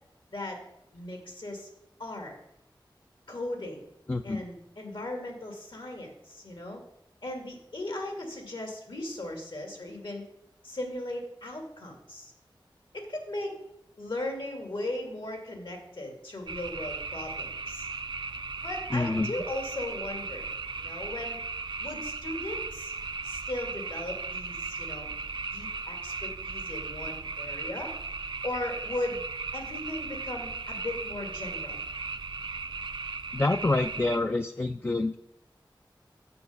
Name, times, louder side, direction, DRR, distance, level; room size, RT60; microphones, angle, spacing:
voice 1, 0.9-1.7 2.0-2.3 3.3-3.8 4.2-6.8 7.2-10.2 10.6-12.3 12.9-13.6 14.0-17.9 18.6-20.5 20.8-21.4 21.8-22.9 23.2-25.1 25.5-27.9 28.4-29.2 29.5-31.8, left 1 dB, 75° left, 2 dB, 2.2 m, -37 dB
voice 2, 4.1-4.4 18.9-19.3 33.3-35.2, left 2 dB, 25° left, 7 dB, 0.4 m, -27 dB
sound 1, 16.5-34.2, right 4 dB, 65° right, 0.5 m, -37 dB
7.0 x 6.9 x 5.4 m, 0.81 s
wide cardioid pair, 70°, 9 cm